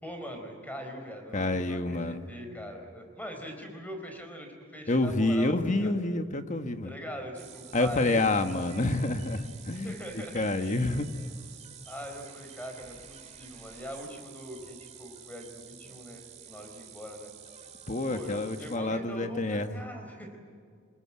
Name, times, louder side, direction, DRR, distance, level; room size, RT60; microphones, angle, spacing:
voice 1, 0.0-5.5 5.8-5.9 6.8-8.2 9.8-10.7 11.9-17.3 18.1-20.4, equal, 10° left, 4 dB, 4.3 m, -42 dB
voice 2, 1.3-2.2 4.9-6.9 7.7-11.1 17.9-19.8, left 2 dB, 40° left, 8 dB, 1.4 m, -28 dB
sound 1, 7.3-18.8, right 8 dB, 35° right, 2.1 m, -49 dB
26.0 x 20.5 x 8.8 m, 2.1 s
head